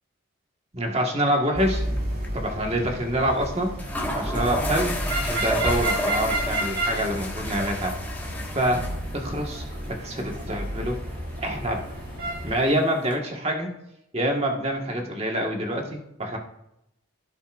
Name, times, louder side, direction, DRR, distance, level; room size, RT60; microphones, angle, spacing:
voice 1, 0.7-1.8 2.3-3.7 4.2-4.9 5.2-7.9 8.5-8.8 9.1-11.0 11.4-11.8 12.4-13.7 14.1-16.4, right 1 dB, 30° right, 1 dB, 1.7 m, -26 dB
sound 1, 1.5-12.5, right 1 dB, 45° right, 2.4 m, -31 dB
sound 2, 1.7-2.0 2.2-2.3 3.4-3.5 3.8-13.2, left 1 dB, 10° left, 1.7 m, -34 dB
17.0 x 7.1 x 2.6 m, 0.84 s
head